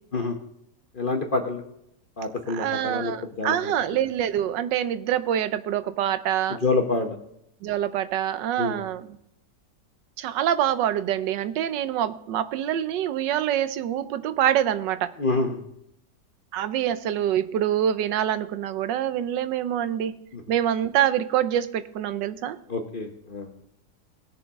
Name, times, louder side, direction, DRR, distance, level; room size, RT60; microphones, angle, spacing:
voice 1, 1.0-1.6 2.2-3.7 6.6-7.2 8.6-8.8 15.2-15.6 20.3-20.4 22.7-23.7, left 3 dB, 35° left, 4 dB, 0.9 m, -27 dB
voice 2, 2.5-6.6 7.6-9.2 10.2-15.1 16.5-20.1 20.5-22.6, right 10 dB, 80° right, 13 dB, 1.3 m, -25 dB
19.0 x 7.1 x 3.6 m, 0.77 s
omnidirectional pair, 1.9 m